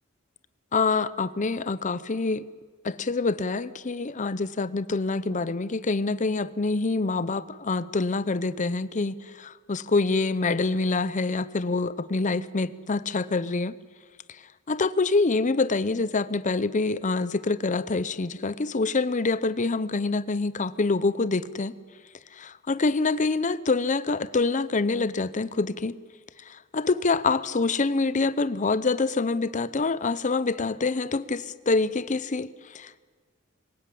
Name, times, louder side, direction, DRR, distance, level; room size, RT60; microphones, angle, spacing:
voice 1, 0.7-2.4 2.8-13.7 14.7-21.7 22.4-26.0 26.5-33.0, left 3 dB, 35° left, 16 dB, 0.7 m, -26 dB
25.5 x 17.0 x 8.5 m, 1.5 s
head